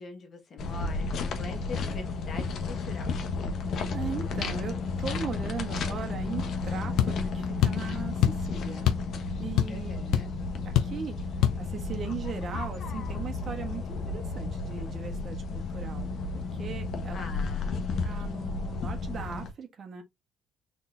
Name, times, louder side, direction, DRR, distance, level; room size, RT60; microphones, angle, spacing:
voice 1, 0.0-3.1 9.7-10.3 17.1-17.9, left 4 dB, 50° left, 1.6 m, -43 dB
sound 1, 0.6-19.5, left 4 dB, 65° left, 1.1 m, -32 dB
voice 2, 3.9-8.9 9.4-10.0 10.6-16.1 16.5-17.3 17.7-17.8 18.0-20.0, right 6 dB, 50° right, 1.3 m, -39 dB
sound 2, 7.0-7.2 7.6-7.9 8.2-8.5 8.9-9.1 9.4-9.9 10.1-10.3 10.8-11.0 11.4-11.6, left 11 dB, 85° left, 0.6 m, -24 dB
4.1 x 3.7 x 2.7 m
cardioid pair, 105°, 0 cm